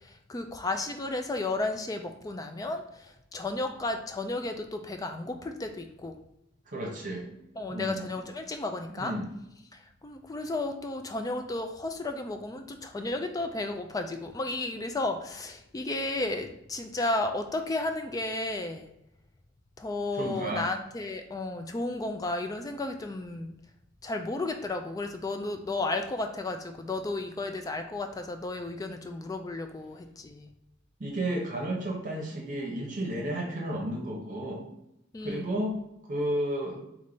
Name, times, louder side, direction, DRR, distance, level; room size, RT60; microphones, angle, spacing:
voice 1, 0.0-6.1 7.6-9.1 9.7-18.9 19.8-23.5 24.0-30.5 35.1-35.6, left 2 dB, 20° left, 6 dB, 0.3 m, -33 dB
voice 2, 6.7-7.3 7.7-8.0 9.0-9.3 20.1-20.7 31.0-34.6 35.2-35.8 36.1-36.8, right 1 dB, 40° right, -1 dB, 0.8 m, -32 dB
3.5 x 3.2 x 3.9 m, 0.84 s
head